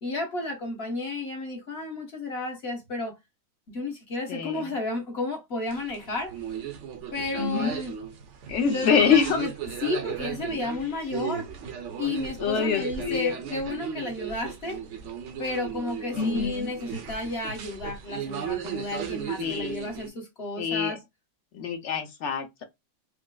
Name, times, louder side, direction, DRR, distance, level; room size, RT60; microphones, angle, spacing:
voice 1, 0.0-3.1 3.7-6.3 7.1-7.9 8.7-9.5 9.8-11.5 12.0-14.8 15.4-21.0, left 2 dB, 45° left, 1.1 m, -32 dB
voice 2, 4.3-4.7 7.4-7.7 8.5-9.5 12.4-13.4 16.2-16.7 19.4-19.9 20.6-21.0 21.5-22.6, left 6 dB, 65° left, 0.7 m, -25 dB
sound 1, 5.7-20.1, right 8 dB, 60° right, 0.8 m, -36 dB
4.5 x 2.0 x 2.2 m
omnidirectional pair, 1.8 m